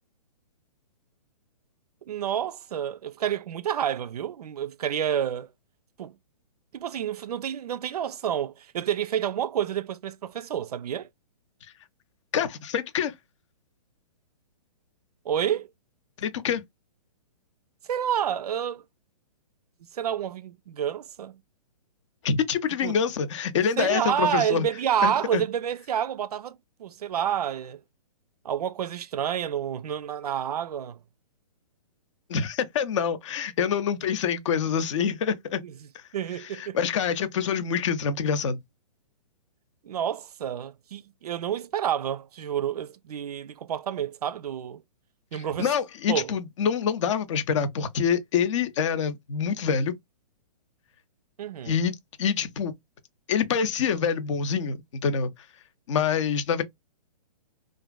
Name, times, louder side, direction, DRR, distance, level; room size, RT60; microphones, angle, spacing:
voice 1, 2.0-5.5 6.0-6.2 6.7-11.1 15.3-15.7 17.9-18.8 19.9-21.4 22.8-23.0 23.8-27.8 28.4-31.0 35.6-35.7 36.1-36.8 39.8-44.8 45.3-45.7 46.1-46.3 51.4-51.8, right 9 dB, 75° right, 0.4 m, -29 dB
voice 2, 12.3-13.1 16.2-16.6 22.2-24.7 25.0-25.4 32.3-35.6 35.9-36.0 36.6-38.6 45.3-49.9 51.7-52.7 53.3-55.3 55.9-56.6, left 7 dB, 50° left, 0.6 m, -26 dB
2.4 x 2.4 x 2.2 m
hypercardioid pair, 130°, 20 cm